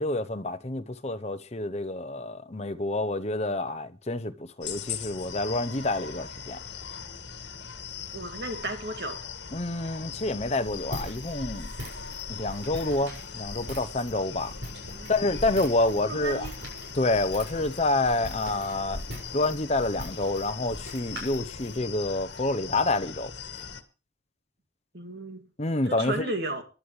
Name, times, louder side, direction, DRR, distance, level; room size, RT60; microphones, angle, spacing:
voice 1, 0.0-6.6 9.5-11.7 12.3-14.5 15.1-16.5 16.9-19.0 19.3-23.3 25.6-26.3, left 2 dB, 35° left, 0.9 m, -28 dB
sound 1, 4.6-23.8, left 6 dB, 65° left, 1.8 m, -40 dB
voice 2, 8.1-9.2 14.9-15.1 16.0-16.5 24.9-25.4 25.9-26.6, right 2 dB, 60° right, 2.2 m, -33 dB
Walk footsteps, 10.6-21.8, equal, 75° right, 6.9 m, -41 dB
22.0 x 11.5 x 3.3 m
head